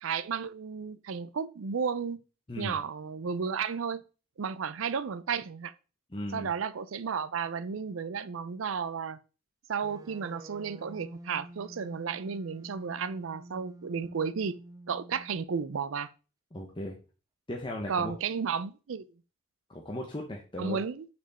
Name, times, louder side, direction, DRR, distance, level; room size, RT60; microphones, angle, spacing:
voice 1, 0.0-2.2 2.6-4.0 4.4-5.7 6.3-9.2 9.7-14.6 14.9-16.1 17.9-19.1 20.6-21.1, right 6 dB, 75° right, 0.5 m, -33 dB
voice 2, 2.5-2.8 6.1-6.5 16.5-17.0 17.5-18.1 19.7-20.8, left 1 dB, 25° left, 0.9 m, -37 dB
sound 1, 9.8-15.9, right 1 dB, 15° right, 0.3 m, -49 dB
6.0 x 4.5 x 4.2 m
head